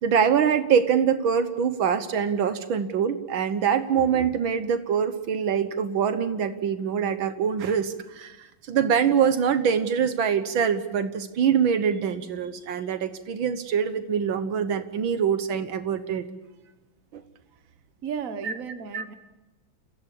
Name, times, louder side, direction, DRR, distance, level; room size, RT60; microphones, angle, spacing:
voice 1, 0.0-16.3 17.1-17.2 18.4-18.5 18.9-19.0, right 7 dB, 80° right, 10 dB, 1.9 m, -24 dB
voice 2, 18.0-19.1, right 6 dB, 45° right, 9 dB, 1.7 m, -34 dB
29.5 x 15.5 x 8.6 m, 1.1 s
omnidirectional pair, 2.2 m